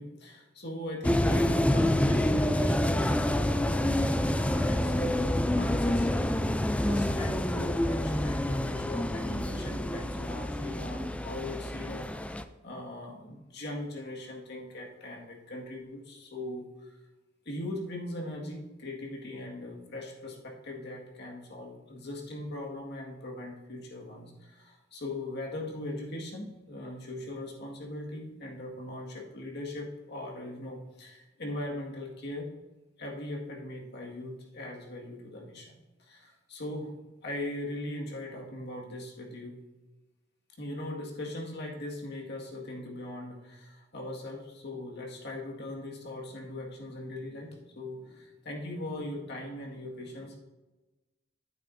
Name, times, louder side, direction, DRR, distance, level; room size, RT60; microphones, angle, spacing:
voice 1, 0.0-6.3 6.8-16.9 17.5-32.5 33.0-37.0 37.2-39.6 40.6-50.4, left 1 dB, 60° left, -1 dB, 1.9 m, -40 dB
sound 1, 1.0-12.4, left 1 dB, 5° left, 0.3 m, -27 dB
11.0 x 9.0 x 2.6 m, 1.1 s
head